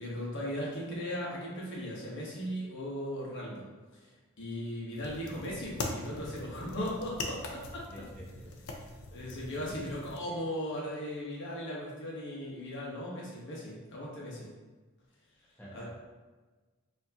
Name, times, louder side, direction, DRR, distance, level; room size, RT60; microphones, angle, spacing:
voice 1, 0.0-3.7 4.0-7.8 9.1-14.5 15.7-15.9, equal, 60° left, -4 dB, 1.1 m, -38 dB
sound 1, 4.9-10.2, left 2 dB, 85° left, 0.5 m, -42 dB
voice 2, 7.9-8.7 9.7-10.3 15.6-15.9, equal, 10° left, -7 dB, 1.1 m, -50 dB
4.5 x 2.9 x 2.8 m, 1.3 s
head